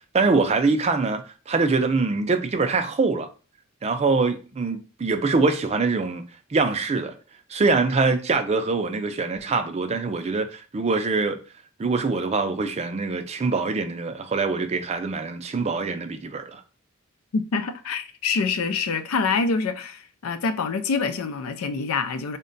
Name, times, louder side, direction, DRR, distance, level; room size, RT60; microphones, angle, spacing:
voice 1, 0.1-3.3 3.8-6.2 6.5-7.1 7.5-11.4 11.8-16.6, right 4 dB, 30° right, 0.4 m, -24 dB
voice 2, 17.3-22.4, left 4 dB, 75° left, 0.4 m, -26 dB
3.7 x 2.2 x 3.8 m
head